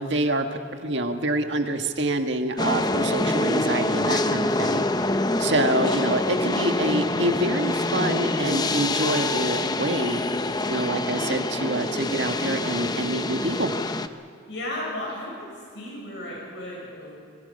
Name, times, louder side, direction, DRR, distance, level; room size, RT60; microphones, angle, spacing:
voice 1, 0.0-4.8 5.4-10.2 10.7-13.8, right 1 dB, 70° right, 5 dB, 1.7 m, -26 dB
sound 1, 2.6-14.1, left 2 dB, 20° left, 0.7 m, -25 dB
voice 2, 14.5-15.3 15.5-17.1, left 1 dB, 70° left, -3 dB, 7.1 m, -34 dB
27.5 x 23.0 x 5.5 m, 2.4 s
head